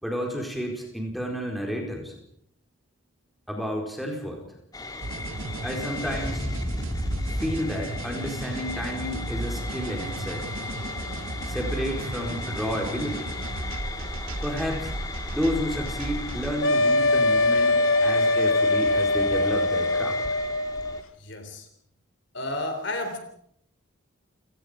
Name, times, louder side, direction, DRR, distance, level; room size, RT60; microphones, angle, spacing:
voice 1, 0.0-2.1 3.5-4.4 5.6-6.4 7.4-10.5 11.5-13.3 14.4-14.9 15.3-20.2, equal, ahead, 0 dB, 4.4 m, -31 dB
sound 1, 4.7-21.0, left 2 dB, 20° left, 2.0 m, -36 dB
sound 2, 5.0-16.5, right 1 dB, 75° right, 1.4 m, -34 dB
sound 3, 16.6-21.0, left 2 dB, 80° left, 0.9 m, -22 dB
voice 2, 21.2-21.7 22.3-23.2, left 1 dB, 60° left, 7 dB, 3.7 m, -31 dB
29.5 x 18.0 x 5.1 m, 0.69 s
head